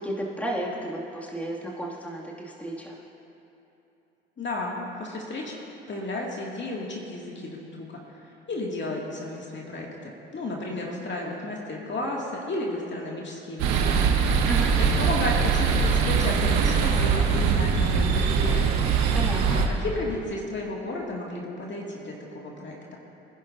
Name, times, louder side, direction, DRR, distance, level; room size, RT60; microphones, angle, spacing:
voice 1, 0.0-2.9 14.4-14.7 19.1-19.6, right 1 dB, 5° left, -4 dB, 2.2 m, -33 dB
voice 2, 4.4-5.5 5.9-14.0 14.8-18.6 19.4-23.0, left 2 dB, 35° left, -2 dB, 2.2 m, -33 dB
sound 1, 13.6-19.7, right 6 dB, 65° right, 1.2 m, -22 dB
24.0 x 10.5 x 2.6 m, 2.9 s
hypercardioid pair, 55°, 31 cm